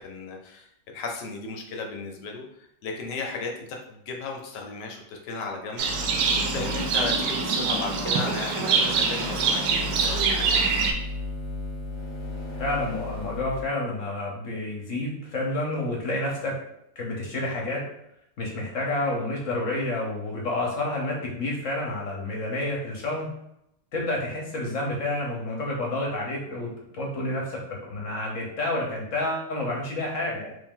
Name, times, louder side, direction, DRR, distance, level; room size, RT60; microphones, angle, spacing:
voice 1, 0.0-10.6, left 4 dB, 75° left, 2 dB, 1.3 m, -35 dB
sound 1, 5.8-13.6, left 2 dB, 20° left, 0.8 m, -35 dB
Livestock farm animals working animals, 5.8-10.9, right 5 dB, 85° right, 1.3 m, -25 dB
voice 2, 12.6-16.5 17.0-17.8 18.4-23.3 23.9-30.5, left 2 dB, 55° left, -2 dB, 1.1 m, -29 dB
3.6 x 2.6 x 3.6 m, 0.79 s
omnidirectional pair, 1.9 m